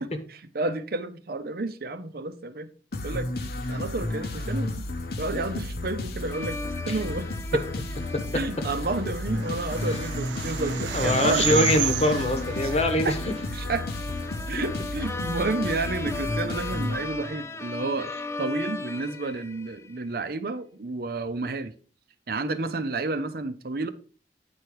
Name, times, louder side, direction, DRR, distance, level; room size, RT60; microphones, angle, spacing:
voice 1, 0.0-2.7 3.0-4.9 5.2-6.6 6.9-7.6 8.3-11.6 12.6-12.8 13.0-13.1 13.5-13.9 14.5-18.1 18.4-21.7 22.3-23.9, right 3 dB, 55° right, 0.7 m, -31 dB
sound 1, 2.9-17.5, left 2 dB, 60° left, 1.0 m, -32 dB
sound 2, 6.3-20.0, left 2 dB, 15° left, 0.4 m, -37 dB
sound 3, 8.7-14.2, right 10 dB, 80° right, 0.3 m, -32 dB
voice 2, 10.9-13.2 14.6-14.7, left 1 dB, 35° left, 1.2 m, -23 dB
9.5 x 4.6 x 4.8 m
head